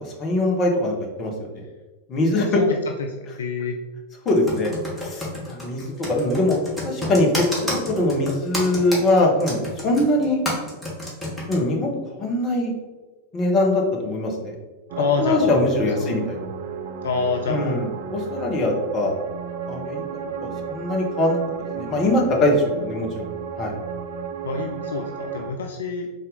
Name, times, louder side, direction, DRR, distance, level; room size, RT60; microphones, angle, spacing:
voice 1, 0.2-1.6 2.1-2.5 4.2-4.7 5.0-6.6 6.8-10.4 11.5-12.7 13.3-14.5 15.2-16.4 17.5-19.1 19.7-20.0 20.4-21.4 21.7-23.3 23.6-23.7, left 1 dB, 30° left, 0 dB, 0.9 m, -22 dB
voice 2, 2.4-3.8 15.0-15.6 16.0-16.1 17.0-17.9 24.4-26.1, left 5 dB, 65° left, 3 dB, 0.3 m, -27 dB
Computer keyboard, 4.3-11.6, left 1 dB, 5° left, 1.3 m, -29 dB
sound 1, 14.9-25.5, right 6 dB, 50° right, 0.4 m, -33 dB
4.0 x 2.5 x 3.9 m, 1.2 s
figure-of-eight pair, 90°, 0 cm